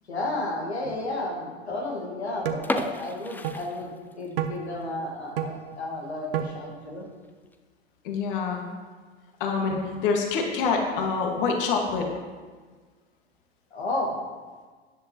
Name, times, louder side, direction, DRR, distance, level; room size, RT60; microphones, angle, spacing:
voice 1, 0.1-7.1 13.7-14.2, left 2 dB, 80° left, -1 dB, 1.9 m, -32 dB
sound 1, 2.4-2.7 3.4-3.6 4.4-4.6 5.4-5.5 6.3-6.5, right 10 dB, 60° right, 1.1 m, -28 dB
sound 2, 2.6-4.5 4.8-4.9 5.4-5.6 6.0-6.1 6.4-6.5 7.2-7.6, left 2 dB, 5° left, 0.6 m, -33 dB
voice 2, 8.0-8.6 9.4-12.1, left 4 dB, 55° left, 1 dB, 1.9 m, -26 dB
13.0 x 10.5 x 3.1 m, 1.5 s
figure-of-eight pair, 90°, 32 cm